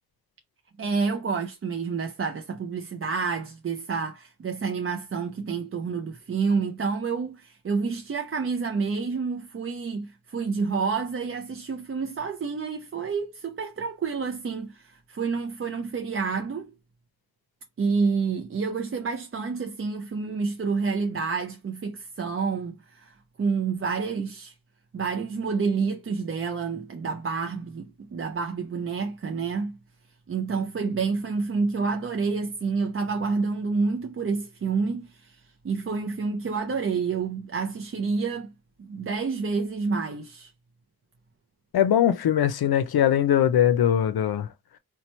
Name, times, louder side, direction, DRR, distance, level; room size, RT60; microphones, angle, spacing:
voice 1, 0.8-16.7 17.8-24.5 24.9-29.8 30.3-35.4 35.6-38.5 38.8-40.5, right 5 dB, 35° right, 0.4 m, -29 dB
voice 2, 41.7-44.5, left 10 dB, 80° left, 0.5 m, -21 dB
2.9 x 2.2 x 4.2 m
wide cardioid pair, 120°, 36 cm